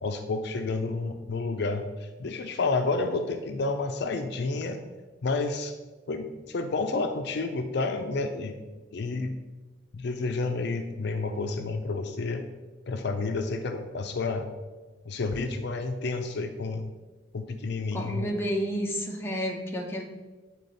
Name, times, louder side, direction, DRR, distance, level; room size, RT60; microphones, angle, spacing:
voice 1, 0.0-4.9 5.2-5.7 6.1-9.4 9.9-12.5 12.9-14.5 15.1-16.9 17.3-18.3, left 3 dB, 65° left, 7 dB, 0.5 m, -30 dB
voice 2, 17.9-20.0, equal, 15° left, 0 dB, 0.9 m, -30 dB
9.2 x 4.2 x 4.0 m, 1.3 s
head